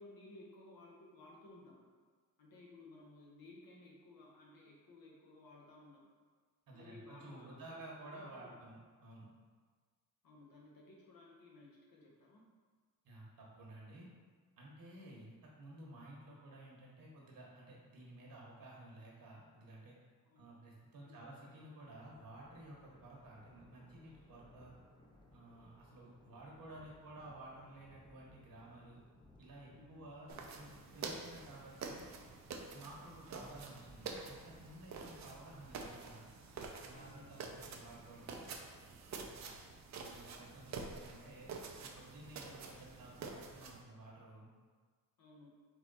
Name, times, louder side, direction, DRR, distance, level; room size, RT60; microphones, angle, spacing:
voice 1, 0.0-1.9 2.4-6.1 6.7-8.6 10.2-12.5 20.2-20.6 21.0-21.3 29.7-30.0 36.9-37.4 45.2-45.6, left 2 dB, 80° left, -2 dB, 1.1 m, -58 dB
voice 2, 6.7-9.3 13.0-14.1 14.6-19.9 20.3-24.7 25.3-29.0 29.4-32.0 32.7-36.3 36.8-38.4 39.9-44.5, right 1 dB, 70° right, -3 dB, 1.2 m, -54 dB
Thunder, 21.8-38.4, left 1 dB, 15° left, 0.4 m, -66 dB
sound 1, 30.3-43.8, right 4 dB, 50° right, 0.5 m, -48 dB
4.2 x 3.0 x 4.0 m, 1.5 s
wide cardioid pair, 160°, 35 cm